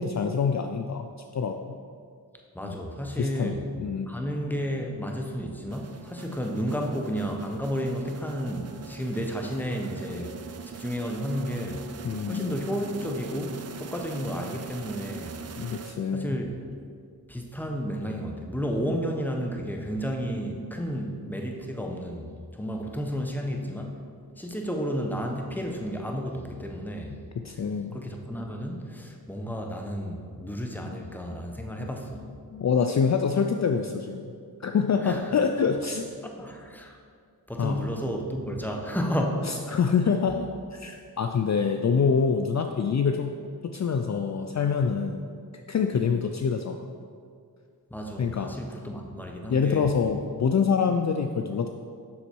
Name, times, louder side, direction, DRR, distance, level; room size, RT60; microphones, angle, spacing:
voice 1, 0.0-1.8 2.6-2.7 3.2-3.5 3.8-4.1 12.0-12.5 15.6-16.3 27.4-28.0 30.8-31.0 32.5-34.3 34.6-36.0 37.6-37.9 39.4-43.3 43.6-45.3 45.7-46.9 48.2-48.5 49.5-51.7, left 6 dB, 45° left, 5 dB, 0.5 m, -26 dB
voice 2, 2.5-3.7 4.1-10.3 10.6-11.8 12.2-15.4 16.1-16.5 17.3-24.0 24.4-27.2 27.9-32.3 35.0-35.3 36.2-37.0 37.5-39.8 47.9-49.9, equal, 5° left, 2 dB, 1.0 m, -32 dB
sound 1, 5.7-16.4, right 6 dB, 40° right, 0.5 m, -42 dB
7.1 x 6.4 x 4.6 m, 2.2 s
cardioid pair, 50°, 39 cm